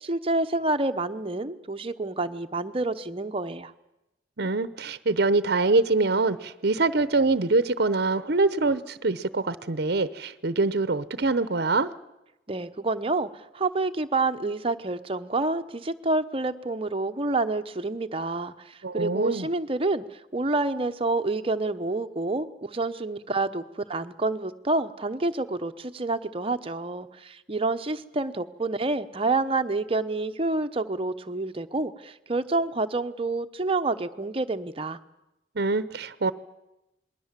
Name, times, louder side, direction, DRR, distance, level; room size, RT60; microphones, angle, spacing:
voice 1, 0.0-3.7 12.5-35.0, right 2 dB, 30° right, 8 dB, 0.9 m, -28 dB
voice 2, 4.4-11.9 18.8-19.5 35.6-36.3, right 3 dB, 60° right, 15 dB, 0.8 m, -24 dB
27.5 x 20.5 x 7.5 m, 0.92 s
head